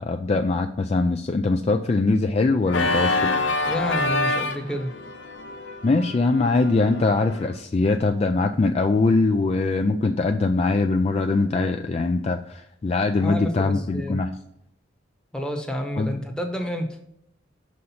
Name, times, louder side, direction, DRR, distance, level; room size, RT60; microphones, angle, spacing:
voice 1, 0.0-3.2 5.8-14.3 16.0-16.2, left 3 dB, 35° left, 6 dB, 0.3 m, -22 dB
Organ, 2.7-7.5, left 2 dB, 70° left, 0.7 m, -27 dB
voice 2, 3.6-4.9 13.1-14.2 15.3-17.0, equal, 5° left, 2 dB, 0.9 m, -29 dB
6.4 x 4.2 x 5.6 m, 0.74 s
head